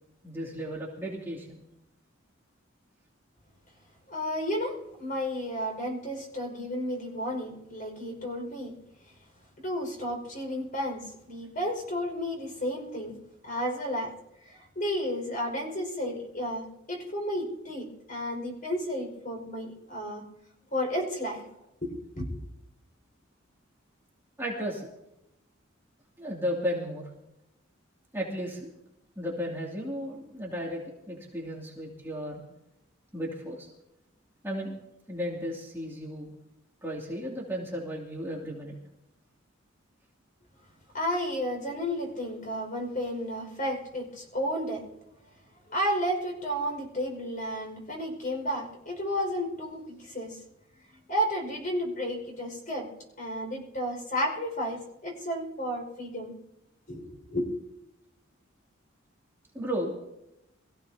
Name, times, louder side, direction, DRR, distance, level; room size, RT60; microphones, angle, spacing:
voice 1, 0.2-1.6 24.4-24.9 26.2-27.0 28.1-28.7 29.2-30.8 31.1-32.4 33.1-33.7 34.4-34.8 35.1-36.3 36.8-38.8 59.5-60.0, equal, 10° right, -4 dB, 2.6 m, -34 dB
voice 2, 4.1-8.8 9.6-14.1 14.4-20.2 20.7-21.4 21.8-22.5 40.9-44.9 45.7-50.4 51.1-52.9 53.2-56.3 56.9-57.5, equal, 45° left, 2 dB, 5.3 m, -32 dB
24.5 x 15.5 x 2.8 m, 0.86 s
head